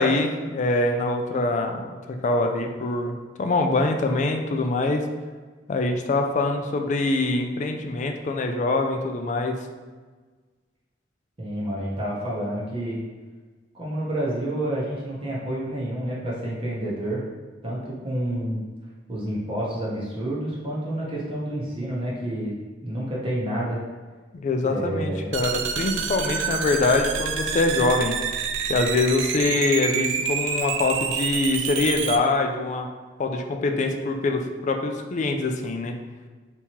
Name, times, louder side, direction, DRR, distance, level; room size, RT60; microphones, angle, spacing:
voice 1, 0.0-5.1 5.7-9.6 24.3-28.2 28.7-32.9 33.2-36.0, left 2 dB, 40° left, 4 dB, 0.3 m, -24 dB
voice 2, 11.4-13.0 13.7-17.2 17.6-18.6 19.1-22.5 22.8-23.8 24.6-25.3, right 1 dB, 30° right, -6 dB, 0.7 m, -29 dB
sound 1, 25.3-32.2, right 6 dB, 90° right, 0.3 m, -28 dB
3.5 x 2.9 x 2.9 m, 1.4 s
head